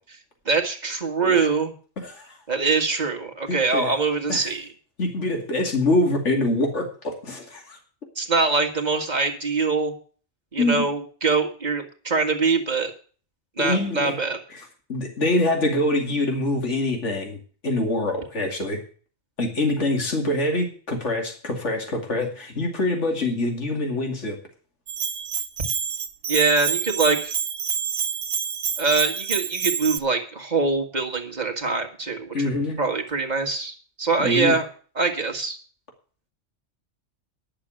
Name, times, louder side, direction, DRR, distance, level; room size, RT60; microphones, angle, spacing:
voice 1, 0.5-1.7 2.5-4.7 8.2-9.9 10.5-12.9 13.6-14.4 26.3-27.3 28.8-32.3 32.8-34.7 35.0-35.6, right 4 dB, 35° right, 2 dB, 1.9 m, -23 dB
voice 2, 2.0-2.4 3.5-3.9 4.3-4.5 5.0-7.8 10.6-10.9 13.6-14.2 14.5-14.6 14.9-18.8 19.4-24.4 32.3-32.8 34.2-34.6, left 2 dB, 70° left, 2 dB, 2.8 m, -25 dB
Bell, 24.9-30.0, right 7 dB, 60° right, 1.1 m, -28 dB
11.0 x 6.8 x 8.8 m, 0.42 s
omnidirectional pair, 1.2 m